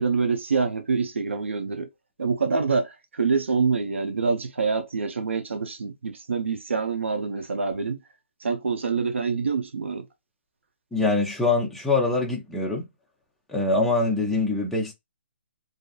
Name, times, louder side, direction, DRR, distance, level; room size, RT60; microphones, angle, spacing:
voice 1, 0.0-1.9 2.2-8.0 8.4-10.1, right 5 dB, 85° right, 0.6 m, -26 dB
voice 2, 10.9-12.9 13.5-14.9, left 3 dB, ahead, 0.5 m, -24 dB
2.6 x 2.3 x 2.4 m
hypercardioid pair, 150°, 6 cm